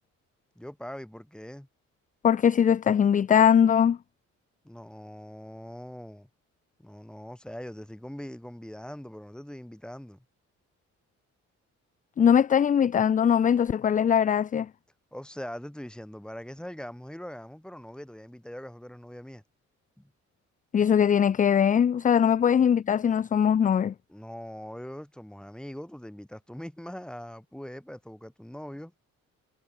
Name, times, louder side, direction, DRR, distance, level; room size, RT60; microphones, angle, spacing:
voice 1, 0.6-1.7 4.6-6.3 6.8-10.2 15.1-19.4 20.0-20.1 22.4-22.5 24.1-28.9, equal, 5° left, 2.7 m, -42 dB
voice 2, 2.2-4.0 12.2-14.7 20.7-23.9, left 8 dB, 30° left, 0.4 m, -21 dB
cardioid pair, 90°, 30 cm